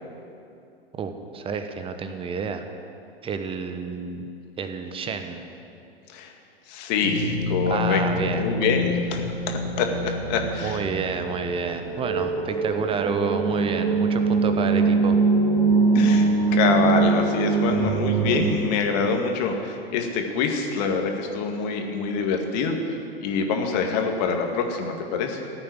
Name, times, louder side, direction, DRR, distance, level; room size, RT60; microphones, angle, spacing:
voice 1, 0.9-2.6 3.2-4.3 4.6-5.4 7.7-8.5 10.6-15.2, right 5 dB, 15° right, 7 dB, 1.1 m, -29 dB
voice 2, 6.7-10.8 15.9-22.8 23.2-25.4, left 5 dB, 40° left, 3 dB, 2.1 m, -25 dB
sound 1, 7.0-18.4, right 3 dB, 60° right, 2.2 m, -23 dB
15.0 x 8.7 x 9.8 m, 2.6 s
figure-of-eight pair, 100°, 31 cm